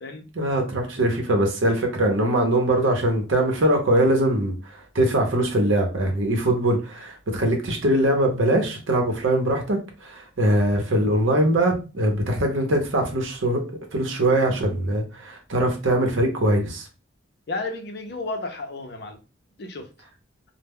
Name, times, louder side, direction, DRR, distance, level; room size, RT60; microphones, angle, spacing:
voice 1, 0.3-13.6 13.9-16.8, right 1 dB, 80° right, 0.7 m, -22 dB
voice 2, 17.5-19.2 19.6-19.9, left 3 dB, 55° left, 0.5 m, -33 dB
2.1 x 2.0 x 3.4 m
head